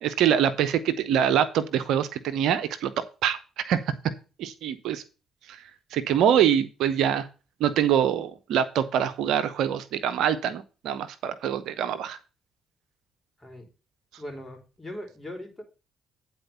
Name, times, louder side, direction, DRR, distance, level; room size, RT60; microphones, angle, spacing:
voice 1, 0.0-2.9 3.2-3.4 3.7-3.8 4.4-5.0 5.9-7.3 7.6-12.2, right 9 dB, 70° right, 12 dB, 0.7 m, -24 dB
voice 2, 6.3-6.6 13.4-13.7 14.2-15.6, equal, 20° left, 3 dB, 3.6 m, -40 dB
9.4 x 4.3 x 6.8 m, 0.33 s
hypercardioid pair, 45°, 0 cm